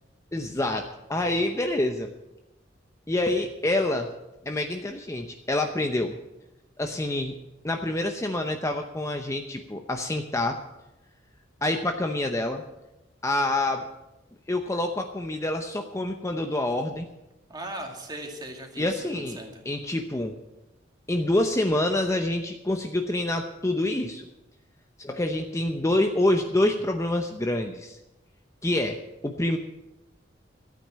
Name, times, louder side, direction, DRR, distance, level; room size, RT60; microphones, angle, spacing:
voice 1, 0.3-2.1 3.1-4.1 4.4-6.2 6.8-7.4 7.6-10.6 11.6-12.6 13.2-13.9 14.5-17.1 18.8-19.4 19.6-20.4 21.1-24.2 25.0-28.0 28.6-29.6, left 1 dB, 15° left, 4 dB, 0.7 m, -27 dB
voice 2, 17.5-19.6, right 1 dB, 20° right, 2 dB, 2.2 m, -38 dB
13.5 x 9.0 x 7.4 m, 0.96 s
head